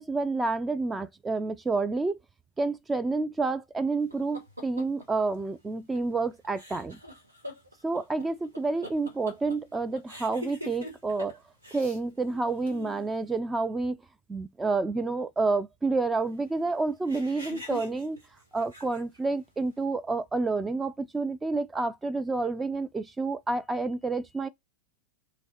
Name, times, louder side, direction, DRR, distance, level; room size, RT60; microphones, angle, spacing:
voice 1, 0.0-2.2 2.6-7.0 7.8-11.4 11.7-14.0 14.3-18.2 18.5-24.5, right 3 dB, 10° right, 0.3 m, -29 dB
sound 1, 4.1-5.1 5.9-6.2 6.4-11.4 11.6-12.0 12.2-13.1 17.0-19.2, equal, 85° right, 1.2 m, -44 dB
3.3 x 3.0 x 2.8 m
figure-of-eight pair, 90°, 0 cm